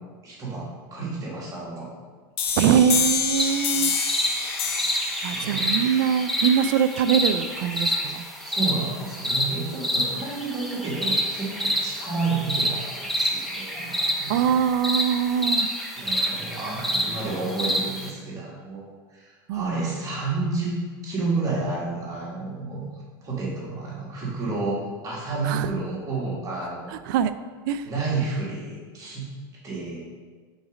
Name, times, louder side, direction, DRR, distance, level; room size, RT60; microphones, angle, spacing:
voice 1, 0.2-1.9 5.3-5.6 8.4-14.4 16.0-18.9 19.1-20.8 21.0-22.9 23.2-24.8 25.0-26.9 27.8-29.3 29.6-30.0, right 3 dB, 30° right, -5 dB, 1.7 m, -30 dB
sound 1, 2.4-7.8, left 6 dB, 55° left, 0.8 m, -29 dB
voice 2, 2.6-4.0 5.2-8.3 14.3-15.7 19.5-19.7 25.4-25.7 27.1-27.3 27.7-27.9, right 8 dB, 65° right, 12 dB, 0.4 m, -23 dB
sound 2, 3.3-18.1, equal, ahead, 0.8 m, -28 dB
5.2 x 3.9 x 4.9 m, 1.5 s
supercardioid pair, 120°, 12 cm